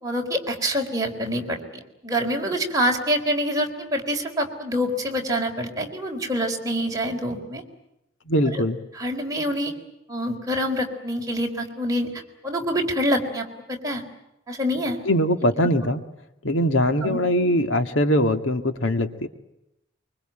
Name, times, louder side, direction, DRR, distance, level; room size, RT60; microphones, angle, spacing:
voice 1, 0.0-7.6 8.5-8.6 8.9-9.7 10.1-12.1 12.4-14.0 14.5-15.0 17.0-17.2, equal, 20° right, 1 dB, 4.2 m, -26 dB
voice 2, 8.3-8.8 15.1-16.0 16.4-19.3, equal, 80° left, 8 dB, 1.9 m, -21 dB
24.5 x 24.0 x 9.0 m, 0.88 s
head